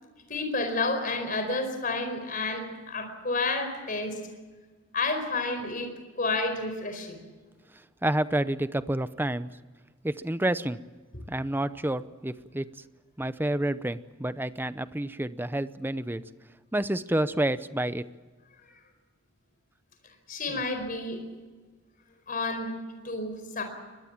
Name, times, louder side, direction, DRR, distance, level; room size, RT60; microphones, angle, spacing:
voice 1, 0.3-4.2 4.9-7.2 20.3-21.2 22.3-22.7 23.0-23.6, left 3 dB, 40° left, 6 dB, 4.7 m, -30 dB
voice 2, 8.0-9.5 10.0-10.8 11.3-12.7 13.2-16.2 16.7-18.0 20.5-20.6, right 1 dB, 10° right, 13 dB, 0.7 m, -29 dB
23.5 x 21.0 x 7.3 m, 1.4 s
head